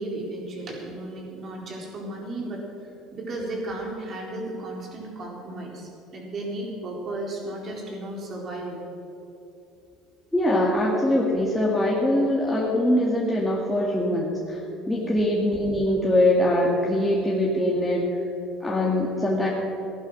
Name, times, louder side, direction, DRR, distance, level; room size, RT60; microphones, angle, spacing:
voice 1, 0.0-8.8 14.9-15.2, right 2 dB, 45° right, -1 dB, 4.1 m, -34 dB
voice 2, 10.3-14.6 14.9-18.2 18.6-19.5, left 1 dB, 10° left, -4 dB, 2.1 m, -22 dB
15.5 x 11.0 x 6.3 m, 2.8 s
supercardioid pair, 95°, 0 cm